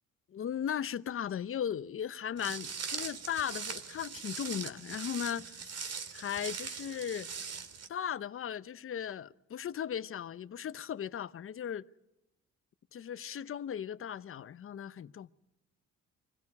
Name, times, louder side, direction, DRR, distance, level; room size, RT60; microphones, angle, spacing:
voice 1, 0.3-5.5 5.8-7.3 7.9-11.8 12.9-15.3, left 9 dB, 45° left, 0.7 m, -37 dB
Walk footsteps, 2.4-7.9, right 6 dB, 55° right, 2.1 m, -41 dB
24.0 x 16.5 x 9.7 m
cardioid pair, 90°, 30 cm